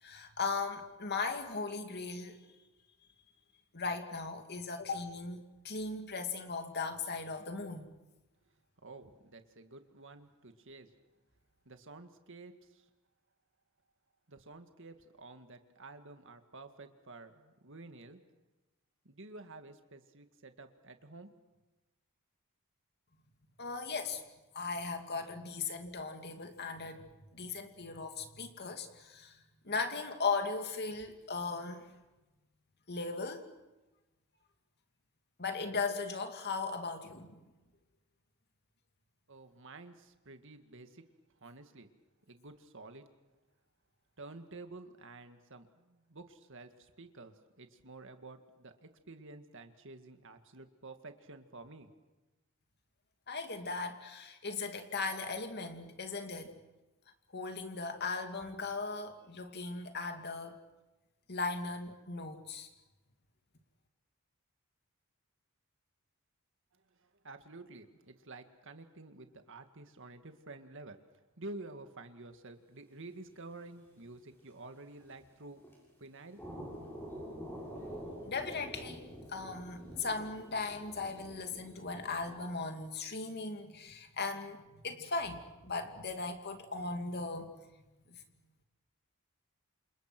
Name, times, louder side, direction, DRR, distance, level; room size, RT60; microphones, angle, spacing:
voice 1, 0.0-2.4 3.7-7.9 23.6-24.2 24.5-27.1 27.3-29.4 29.6-31.9 32.9-33.5 35.4-37.4 53.3-56.6 57.3-60.6 61.3-62.7 77.7-77.9 78.2-87.5 88.1-88.2, left 4 dB, 45° left, 5 dB, 2.6 m, -38 dB
voice 2, 8.8-10.9 11.7-12.9 14.3-18.2 19.0-21.3 39.3-41.0 41.4-41.9 42.3-43.1 44.2-51.9 66.7-71.0 71.4-75.7 76.0-76.4, right 2 dB, 55° right, 7 dB, 2.1 m, -50 dB
sound 1, 73.3-73.4 73.6-73.7 74.3-74.4 75.0-75.3 75.6-75.8 76.3-82.5, equal, 10° left, 7.2 m, -47 dB
28.5 x 27.5 x 6.1 m, 1.1 s
head